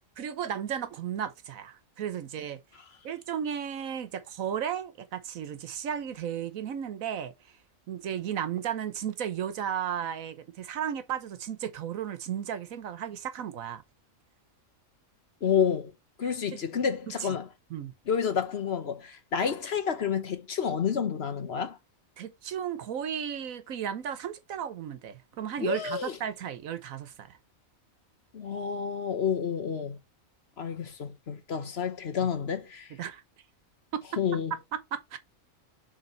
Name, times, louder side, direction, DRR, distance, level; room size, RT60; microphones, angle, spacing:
voice 1, 0.2-2.6 3.0-7.3 7.9-13.8 16.2-16.3 17.2-17.3 17.7-17.9 22.2-27.4 33.0-33.2 33.9-34.0 34.7-35.2, right 9 dB, 85° right, 1.3 m, -34 dB
voice 2, 15.4-15.9 16.2-17.5 18.1-21.8 25.6-26.2 28.3-30.0 30.6-32.9 34.2-34.5, left 7 dB, 55° left, 1.2 m, -29 dB
6.8 x 3.7 x 4.4 m
omnidirectional pair, 1.4 m